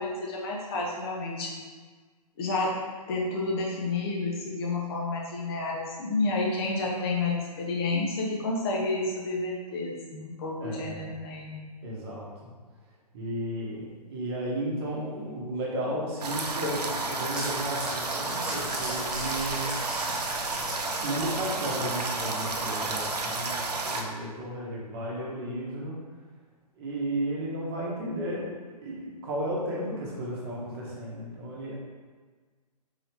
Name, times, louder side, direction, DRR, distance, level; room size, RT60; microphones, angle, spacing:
voice 1, 0.0-1.6 2.4-2.7 3.1-11.6, left 3 dB, 40° left, -2 dB, 0.8 m, -30 dB
voice 2, 10.6-11.1 11.8-12.5 13.1-19.7 21.0-26.0 26.7-28.5 28.8-31.8, right 1 dB, 40° right, -4 dB, 1.0 m, -34 dB
sound 1, 16.2-24.0, right 3 dB, 75° right, 0.6 m, -31 dB
sound 2, 17.4-22.2, right 1 dB, 5° right, 0.6 m, -39 dB
3.9 x 2.9 x 3.4 m, 1.5 s
figure-of-eight pair, 125°, 21 cm